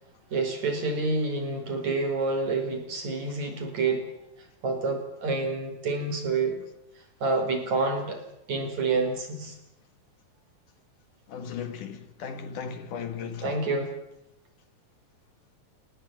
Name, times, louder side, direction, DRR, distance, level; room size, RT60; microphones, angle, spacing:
voice 1, 0.3-4.1 4.6-6.6 7.2-8.2 8.5-9.6 13.4-13.9, right 3 dB, 50° right, 6.0 m, -28 dB
voice 2, 11.3-13.6, left 7 dB, 65° left, 2.9 m, -36 dB
29.0 x 19.5 x 9.1 m
omnidirectional pair, 4.1 m